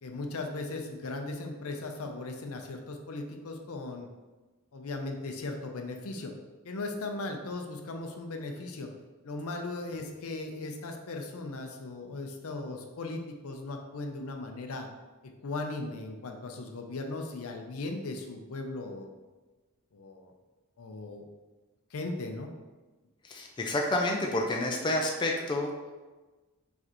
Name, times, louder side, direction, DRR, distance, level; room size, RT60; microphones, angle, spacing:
voice 1, 0.0-4.1 4.7-6.3 6.6-8.9 9.2-14.9 15.2-19.1 19.9-20.3 20.8-21.2 21.9-22.5, left 2 dB, 70° left, 4 dB, 0.6 m, -38 dB
voice 2, 23.2-25.9, left 1 dB, 20° left, 0 dB, 0.4 m, -29 dB
4.7 x 3.3 x 3.0 m, 1.2 s
head